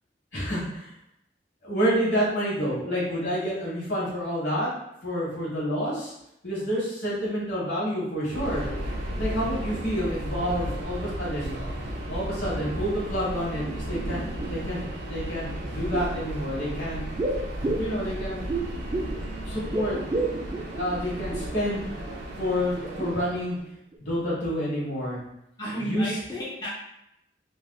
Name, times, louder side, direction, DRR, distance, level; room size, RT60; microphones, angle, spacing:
voice 1, 0.3-0.9 1.6-4.7 5.0-6.1 6.4-8.6 9.2-11.6 12.1-14.2 14.5-14.8 15.1-17.0 17.8-18.4 19.4-20.0 20.7-21.8 22.4-23.5 24.0-25.2 25.8-26.1, equal, 80° left, -7 dB, 1.5 m, -28 dB
Subway metro underground, 8.3-23.6, equal, 90° right, 0.6 m, -34 dB
sound 1, 12.1-12.2 12.5-13.3 13.6-14.8 15.6-16.3 17.2-19.3 19.5-21.6 22.1-22.2 22.6-23.6 23.9-24.0, right 2 dB, 30° right, 0.3 m, -33 dB
voice 2, 25.6-26.7, equal, 25° left, -7 dB, 0.6 m, -33 dB
3.3 x 2.5 x 2.2 m, 0.81 s
head